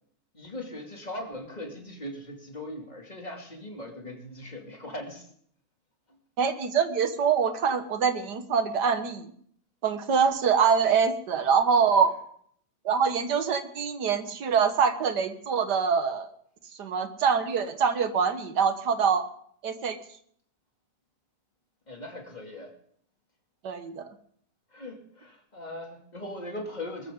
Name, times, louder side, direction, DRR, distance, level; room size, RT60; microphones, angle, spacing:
voice 1, 0.3-5.3 21.9-22.7 24.7-27.1, left 1 dB, 25° left, 1 dB, 2.6 m, -39 dB
voice 2, 6.4-9.3 9.8-12.1 12.9-16.3 16.8-19.3 19.6-20.0 23.6-24.1, right 6 dB, 85° right, 9 dB, 1.9 m, -24 dB
21.5 x 13.5 x 3.7 m, 0.63 s
omnidirectional pair, 1.8 m